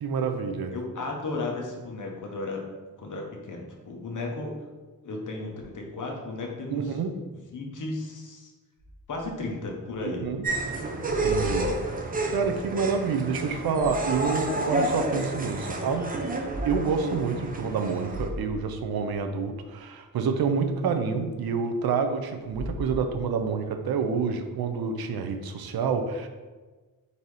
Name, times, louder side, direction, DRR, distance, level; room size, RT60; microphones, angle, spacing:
voice 1, 0.0-0.7 6.7-7.2 10.0-10.5 11.1-11.7 12.3-16.1 16.6-26.3, right 5 dB, 85° right, 6 dB, 0.6 m, -28 dB
voice 2, 0.7-2.6 3.0-4.7 5.0-7.0 7.5-8.5 9.1-10.3, left 2 dB, 55° left, 0 dB, 0.9 m, -34 dB
sound 1, 8.8-10.4 10.7-12.5 13.4-14.5 14.9-15.0 16.3-16.7 17.1-17.3 17.7-17.8 18.0-19.3 22.3-23.5, equal, 60° right, 1.1 m, -39 dB
sound 2, 10.4-18.3, right 2 dB, 25° right, 0.5 m, -30 dB
4.1 x 2.8 x 4.7 m, 1.3 s
wide cardioid pair, 105°, 36 cm